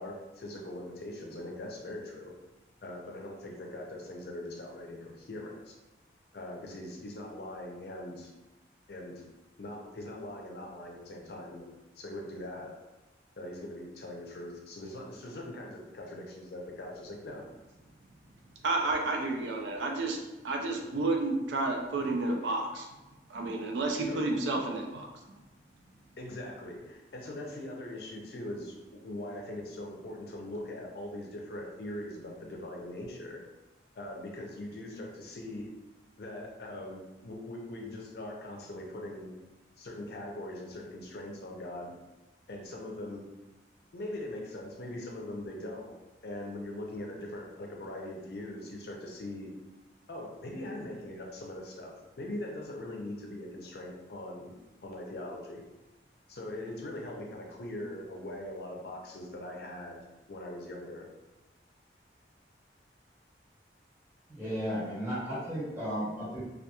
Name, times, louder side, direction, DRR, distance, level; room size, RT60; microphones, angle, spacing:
voice 1, 0.0-2.3 2.8-5.8 6.3-8.3 8.9-9.2 9.6-11.7 12.0-12.7 13.4-17.4 24.1-24.3 26.2-33.4 34.0-35.7 36.2-39.3 39.8-41.9 42.5-43.2 43.9-45.9 46.2-49.5 50.1-54.5 54.8-55.6 56.3-60.0 60.3-61.0, left 1 dB, 60° left, 0 dB, 0.5 m, -41 dB
voice 2, 18.6-20.2 20.4-22.9 23.3-25.1, right 2 dB, 80° right, 2 dB, 0.4 m, -31 dB
voice 3, 64.3-66.4, equal, 15° right, -10 dB, 1.2 m, -34 dB
2.8 x 2.3 x 2.2 m, 1.0 s
head